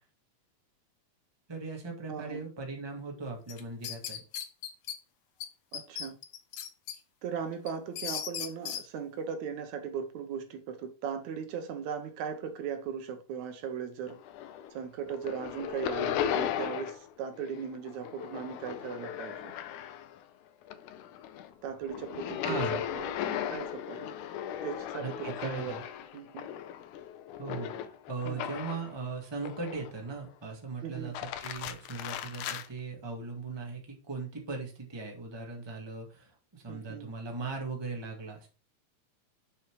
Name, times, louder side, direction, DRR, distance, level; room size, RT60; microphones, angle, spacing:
voice 1, 1.5-4.2 22.4-22.8 25.0-25.8 27.4-38.5, right 4 dB, 10° right, 1.4 m, -39 dB
voice 2, 2.1-2.4 5.7-6.2 7.2-14.2 14.7-19.5 21.6-24.2 24.6-25.8 26.1-26.5 28.3-28.5 30.8-31.2 36.7-37.1, right 7 dB, 70° right, 2.2 m, -38 dB
sound 1, 3.5-5.0 5.4-5.5 5.7-7.0 7.4-8.8, left 9 dB, 65° left, 1.4 m, -37 dB
sound 2, 14.1-14.8 15.1-17.1 17.4-20.2 20.6-28.9 29.4-30.1 30.9-32.7, left 10 dB, 85° left, 2.2 m, -37 dB
6.8 x 6.0 x 4.7 m
omnidirectional pair, 3.5 m